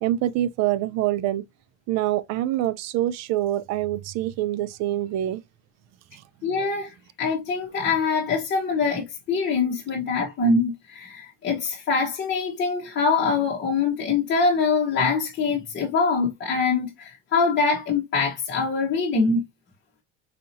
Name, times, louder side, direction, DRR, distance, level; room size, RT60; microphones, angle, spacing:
voice 1, 0.0-1.4 1.9-5.4, right 13 dB, 50° right, 0.5 m, -25 dB
voice 2, 6.4-19.4, left 4 dB, 30° left, 1.0 m, -24 dB
4.2 x 2.7 x 2.7 m
supercardioid pair, 120°, 35 cm